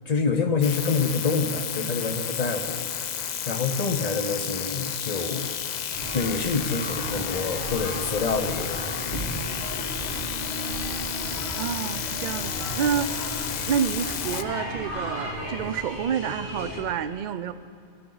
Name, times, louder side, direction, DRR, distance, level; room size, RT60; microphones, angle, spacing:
voice 1, 0.1-2.8 3.5-5.5 6.1-8.8, left 4 dB, 40° left, 7 dB, 0.9 m, -26 dB
sound 1, 0.6-14.4, left 8 dB, 55° left, 0.5 m, -32 dB
sound 2, 5.9-16.8, equal, 80° left, 2.5 m, -35 dB
voice 2, 11.6-13.1 13.7-17.5, right 8 dB, 55° right, 13 dB, 0.6 m, -28 dB
23.0 x 13.0 x 3.9 m, 2.4 s
omnidirectional pair, 1.1 m